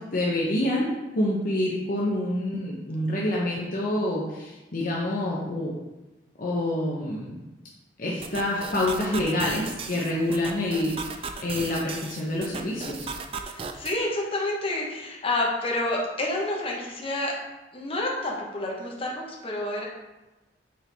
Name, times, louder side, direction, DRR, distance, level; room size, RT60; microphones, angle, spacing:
voice 1, 0.0-5.7 6.4-7.4 8.0-13.1, left 1 dB, 50° left, -4 dB, 0.8 m, -27 dB
sound 1, 8.2-14.0, right 5 dB, 30° right, 0.4 m, -37 dB
voice 2, 13.5-17.3 17.7-19.8, left 2 dB, 30° left, -2 dB, 1.2 m, -29 dB
6.3 x 4.5 x 3.5 m, 1.1 s
head